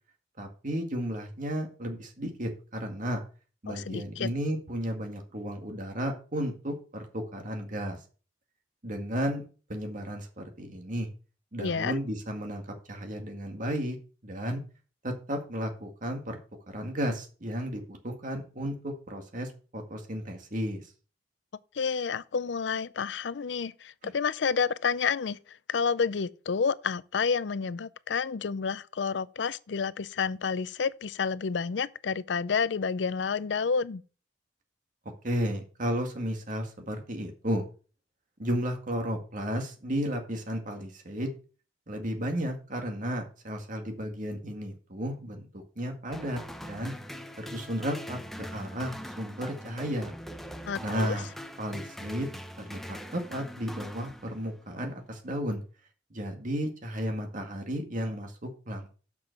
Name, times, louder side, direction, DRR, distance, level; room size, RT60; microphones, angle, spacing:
voice 1, 0.4-3.2 3.6-8.0 8.8-9.4 9.7-11.1 11.5-14.0 14.2-14.6 15.0-16.4 16.7-20.8 24.0-24.1 35.2-37.6 38.4-41.3 41.9-46.9 47.4-48.2 48.5-50.1 50.8-51.3 51.6-52.3 52.7-55.6 56.1-58.9, equal, 45° right, 1.9 m, -33 dB
voice 2, 3.7-4.3 11.6-11.9 21.7-34.0 50.7-51.2, left 5 dB, 70° left, 0.5 m, -30 dB
sound 1, 46.1-54.7, equal, ahead, 0.7 m, -42 dB
7.1 x 6.1 x 6.4 m
head